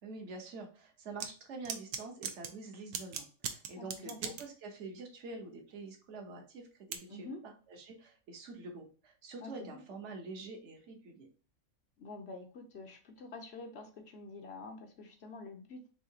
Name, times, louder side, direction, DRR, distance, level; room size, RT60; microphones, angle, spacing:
voice 1, 0.0-11.3, right 3 dB, 55° right, 3 dB, 1.3 m, -46 dB
sound 1, 1.2-1.3 1.6-2.5 2.9-4.4 6.9-7.0, right 7 dB, 85° right, 1.2 m, -38 dB
voice 2, 3.7-4.4 7.1-7.4 9.4-10.0 12.0-15.9, left 3 dB, 55° left, 5 dB, 0.9 m, -47 dB
4.7 x 3.6 x 2.8 m, 0.38 s
omnidirectional pair, 1.6 m